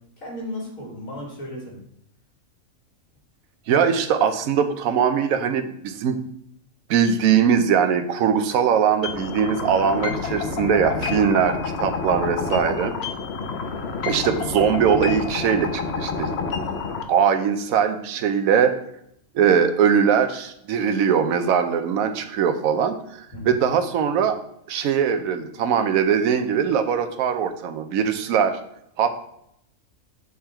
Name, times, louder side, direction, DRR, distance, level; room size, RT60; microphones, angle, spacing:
voice 1, 0.2-1.8 13.3-13.7 23.3-23.5, left 1 dB, 75° left, -2 dB, 2.4 m, -35 dB
voice 2, 3.7-6.2 6.9-12.9 14.0-16.3 17.1-18.8 19.3-24.4 24.7-28.6 29.0-29.2, right 7 dB, 80° right, 8 dB, 1.1 m, -21 dB
sound 1, 9.0-17.0, left 5 dB, 60° left, 0.8 m, -28 dB
6.6 x 3.6 x 4.4 m, 0.75 s
omnidirectional pair, 1.4 m